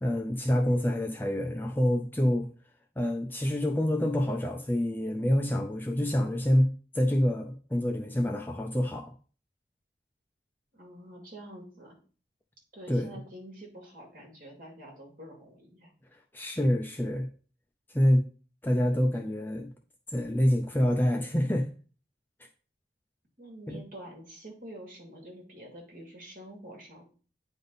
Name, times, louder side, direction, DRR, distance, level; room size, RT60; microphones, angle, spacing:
voice 1, 0.0-2.5 3.0-9.1 12.9-13.1 16.3-17.3 17.9-18.3 18.6-19.7 20.1-21.7 23.7-23.8, left 1 dB, 10° left, 3 dB, 0.5 m, -27 dB
voice 2, 10.7-12.0 12.7-15.9 23.4-27.0, right 1 dB, 50° right, -1 dB, 2.4 m, -47 dB
9.1 x 3.6 x 4.0 m, 0.39 s
head